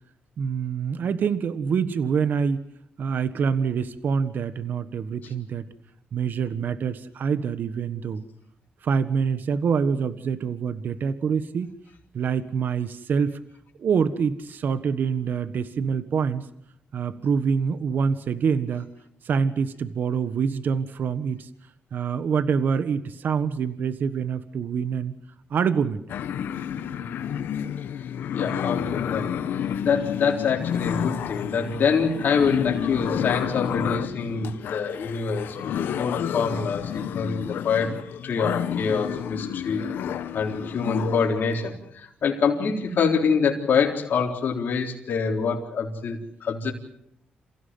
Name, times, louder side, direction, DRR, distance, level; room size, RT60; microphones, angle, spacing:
voice 1, 0.4-2.6 3.0-5.7 6.1-8.2 8.8-11.7 12.1-13.4 13.8-16.5 16.9-18.9 19.2-21.5 21.9-25.1 25.5-26.0, right 6 dB, 65° right, 12 dB, 1.4 m, -25 dB
sound 1, 26.1-41.4, left 9 dB, 85° left, 1.3 m, -30 dB
voice 2, 28.3-39.8 40.3-46.7, left 5 dB, 65° left, 0 dB, 3.9 m, -25 dB
28.5 x 16.0 x 7.7 m, 0.76 s
cardioid pair, 85°, 3 cm